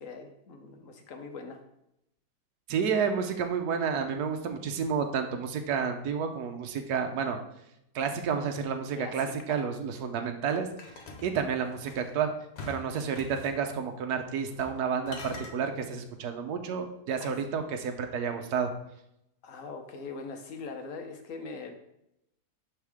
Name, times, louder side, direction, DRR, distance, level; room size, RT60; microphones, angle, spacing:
voice 1, 0.0-1.6 8.9-9.6 17.2-17.4 19.4-21.7, left 4 dB, 55° left, 5 dB, 1.2 m, -42 dB
voice 2, 2.7-7.4 7.9-10.7 11.2-12.3 12.7-18.7, right 6 dB, 70° right, 5 dB, 1.2 m, -30 dB
sound 1, 10.8-12.1 12.6-13.6 14.5-14.8 15.1-15.6, left 3 dB, 70° left, 1.6 m, -44 dB
11.0 x 3.7 x 3.5 m, 0.81 s
omnidirectional pair, 1.8 m